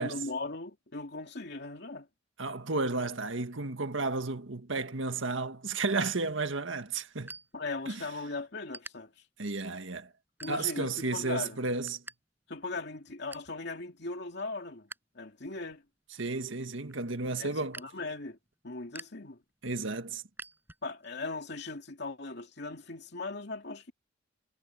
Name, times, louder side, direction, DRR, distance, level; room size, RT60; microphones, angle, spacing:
voice 1, 0.0-2.1 7.5-9.1 10.4-11.6 12.5-14.9 15.1-15.8 17.4-18.4 18.6-19.4 20.8-23.9, left 3 dB, 60° left, 2.6 m, -39 dB
voice 2, 2.4-7.3 7.9-8.0 9.4-10.1 10.5-12.0 16.2-17.8 19.6-20.2, right 3 dB, 80° right, 1.7 m, -32 dB
sound 1, 7.0-8.2 8.5-8.9 9.5-9.7 10.3-11.0 11.3-12.2 12.4-12.5 12.9-13.6 14.0-15.0 15.4-21.1, right 2 dB, 10° right, 7.3 m, -50 dB
head